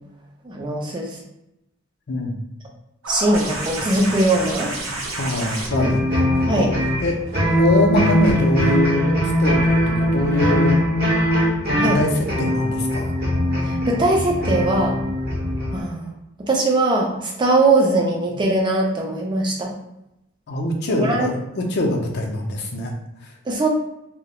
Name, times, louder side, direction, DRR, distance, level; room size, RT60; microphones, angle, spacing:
voice 1, 0.4-1.2 3.1-4.7 6.5-6.7 11.7-12.0 13.6-15.0 15.7-16.1 16.4-19.7 21.0-21.3 23.5-23.7, right 2 dB, 20° right, 0 dB, 0.4 m, -20 dB
sound 1, 3.0-8.3 9.7-9.8, right 2 dB, 90° right, 0.6 m, -31 dB
voice 2, 5.2-6.0 6.5-6.7 7.0-7.2 7.6-10.8 11.7-13.1 20.5-22.9 23.2-23.3, left 2 dB, 50° left, 2 dB, 0.5 m, -23 dB
sound 2, 5.7-15.8, equal, 50° right, 0.8 m, -21 dB
2.3 x 2.0 x 2.8 m, 0.89 s
head